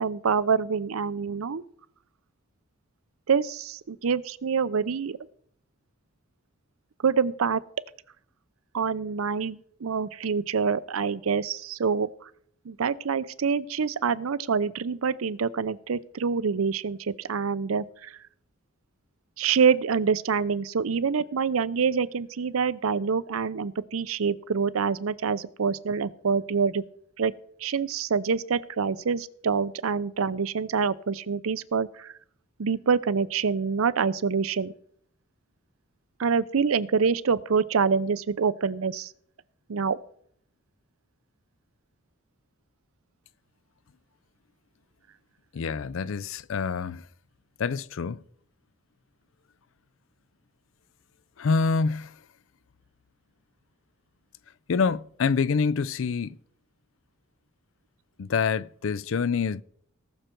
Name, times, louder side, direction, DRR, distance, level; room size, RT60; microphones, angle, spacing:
voice 1, 0.0-1.6 3.3-5.2 7.0-7.6 8.7-12.1 12.7-18.2 19.4-26.8 27.2-27.3 27.6-32.1 32.6-34.7 36.2-39.1 39.7-40.0, right 5 dB, 90° right, 0.6 m, -26 dB
voice 2, 45.5-47.0 47.6-48.2 51.4-52.1 54.7-56.4 58.2-59.6, left 5 dB, 65° left, 0.4 m, -26 dB
19.0 x 6.5 x 4.5 m
head